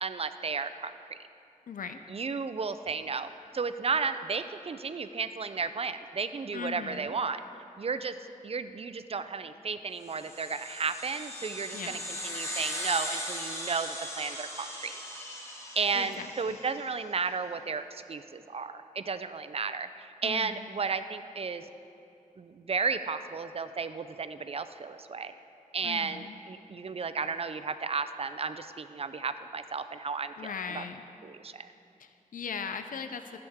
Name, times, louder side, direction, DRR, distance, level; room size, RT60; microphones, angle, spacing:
voice 1, 0.0-0.9 2.1-7.4 7.8-8.2 8.4-15.0 15.8-21.7 22.4-25.3 25.7-30.8 31.2-31.7, right 5 dB, 45° right, 11 dB, 0.4 m, -33 dB
voice 2, 1.7-2.0 6.5-7.2 11.7-12.0 15.9-16.6 20.2-20.7 25.8-26.4 30.4-31.0 32.0-33.4, left 6 dB, 80° left, 8 dB, 0.4 m, -39 dB
sound 1, 10.1-16.9, equal, 20° left, 1.2 m, -39 dB
13.5 x 7.9 x 3.5 m, 2.6 s
wide cardioid pair, 110°, 14 cm